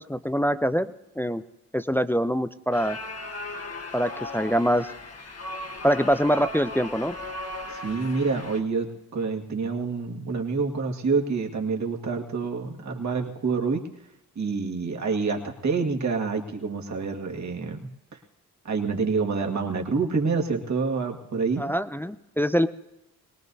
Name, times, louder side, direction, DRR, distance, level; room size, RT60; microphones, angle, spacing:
voice 1, 0.0-1.4 1.7-3.0 3.9-4.9 5.8-7.2 21.6-22.7, equal, 5° left, 10 dB, 0.5 m, -24 dB
sound 1, 2.7-8.6, left 2 dB, 40° left, 1.5 m, -37 dB
voice 2, 7.7-13.8 14.4-17.9 18.6-21.6, right 4 dB, 50° right, 2 dB, 2.0 m, -27 dB
22.5 x 18.5 x 2.8 m, 0.90 s
cardioid pair, 65°, 37 cm